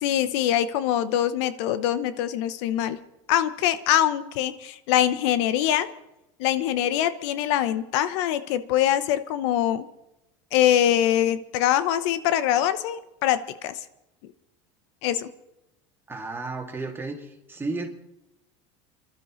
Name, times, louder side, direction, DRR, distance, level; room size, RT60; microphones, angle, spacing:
voice 1, 0.0-3.0 3.3-5.9 6.4-9.9 10.5-13.7 15.0-15.3, left 11 dB, 75° left, 13 dB, 0.9 m, -23 dB
voice 2, 16.1-17.9, right 3 dB, 15° right, 0 dB, 2.4 m, -33 dB
29.0 x 12.0 x 3.1 m, 0.92 s
supercardioid pair, 105°, 15 cm